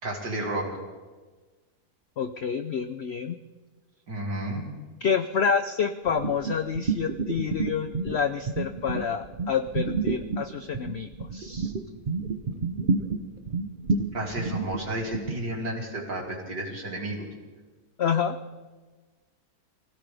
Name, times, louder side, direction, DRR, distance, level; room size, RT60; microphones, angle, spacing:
voice 1, 0.0-0.7 4.1-4.7 14.1-17.3, right 1 dB, 80° right, -1 dB, 3.4 m, -32 dB
voice 2, 2.2-3.4 5.0-11.7 18.0-18.4, left 7 dB, 75° left, 9 dB, 0.6 m, -28 dB
sound 1, 6.1-8.2 8.4-15.3, right 4 dB, 40° right, 0.9 m, -29 dB
24.5 x 16.0 x 3.4 m, 1.3 s
omnidirectional pair, 1.8 m